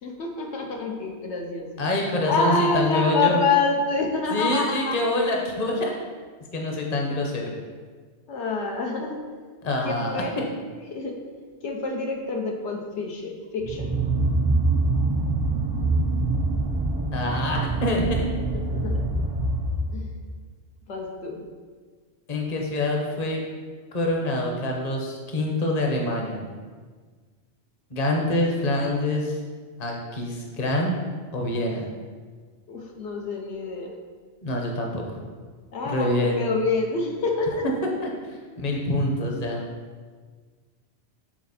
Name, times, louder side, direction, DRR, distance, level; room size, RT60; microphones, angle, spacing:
voice 1, 0.0-1.7 2.3-5.0 8.3-9.2 9.8-10.3 10.9-11.2 11.6-14.0 18.7-19.1 19.9-20.1 20.9-21.4 32.7-33.9 35.7-37.6, left 3 dB, 80° left, 1 dB, 1.1 m, -27 dB
voice 2, 1.8-3.4 4.3-5.9 6.5-7.5 9.6-10.5 17.1-18.0 22.3-23.4 23.9-26.5 27.9-29.4 29.8-31.0 31.3-31.9 34.4-35.2 35.8-36.4 38.0-39.6, left 1 dB, 35° left, 0 dB, 1.0 m, -26 dB
sound 1, 13.6-20.2, right 2 dB, 30° right, 0.4 m, -25 dB
7.5 x 4.1 x 4.2 m, 1.5 s
omnidirectional pair, 1.2 m